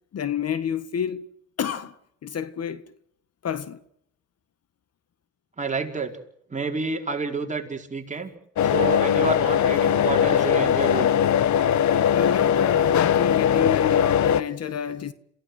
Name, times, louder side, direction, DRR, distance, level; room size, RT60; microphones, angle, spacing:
voice 1, 0.1-1.3 1.6-2.9 3.4-3.8 12.1-15.1, left 8 dB, 55° left, 1.7 m, -29 dB
voice 2, 5.6-6.2 6.5-8.3 8.6-11.1, right 4 dB, 25° right, 4.7 m, -29 dB
sound 1, 8.6-14.4, left 9 dB, 70° left, 1.3 m, -20 dB
27.5 x 16.5 x 7.8 m
cardioid pair, 90°, 30 cm